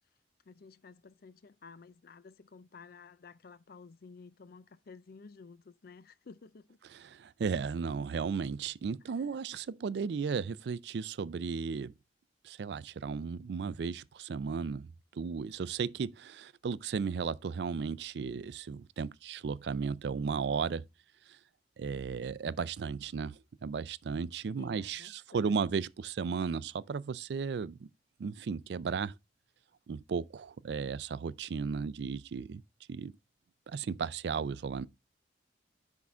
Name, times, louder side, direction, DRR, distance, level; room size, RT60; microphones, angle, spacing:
voice 1, 0.4-6.8 9.1-9.3 24.6-25.7, left 4 dB, 55° left, 0.5 m, -53 dB
voice 2, 7.0-11.9 12.4-20.8 21.3-21.4 21.8-27.9 28.2-29.1 29.9-32.6 32.9-33.1 33.7-34.9, right 5 dB, 65° right, 0.4 m, -35 dB
10.0 x 3.6 x 3.7 m
head